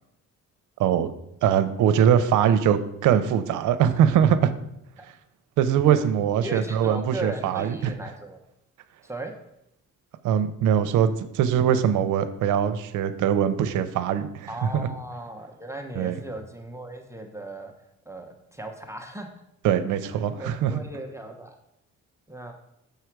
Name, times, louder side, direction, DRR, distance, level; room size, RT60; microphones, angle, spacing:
voice 1, 1.4-4.5 5.6-7.9 10.2-14.9 16.0-16.2 19.6-20.7, right 9 dB, 85° right, 11 dB, 0.6 m, -22 dB
voice 2, 6.4-8.4 9.0-9.3 14.5-17.7 18.0-19.3 20.3-21.6 22.3-22.5, right 1 dB, 10° right, 3 dB, 0.8 m, -37 dB
6.8 x 4.8 x 4.6 m, 0.80 s
cardioid pair, 90°, 30 cm